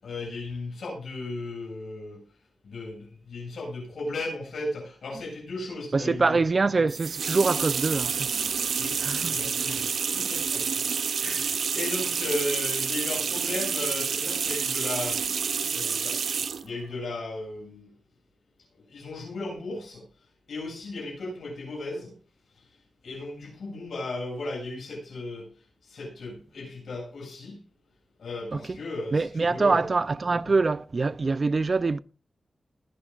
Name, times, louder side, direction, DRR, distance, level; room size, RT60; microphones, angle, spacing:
voice 1, 0.0-2.2 2.6-6.4 8.8-9.8 10.1-15.3 15.7-16.2 16.6-17.9 18.9-20.0 20.5-22.1 23.0-25.5 25.9-27.6 28.2-29.8, left 2 dB, 85° left, 7.7 m, -35 dB
voice 2, 5.9-8.3 9.0-9.4 9.7-9.8 11.3-11.4 28.5-28.8 29.1-32.0, right 3 dB, 45° right, 0.5 m, -25 dB
sound 1, 6.9-16.7, right 6 dB, 90° right, 0.6 m, -28 dB
21.0 x 10.0 x 2.5 m
wide cardioid pair, 90°, 0 cm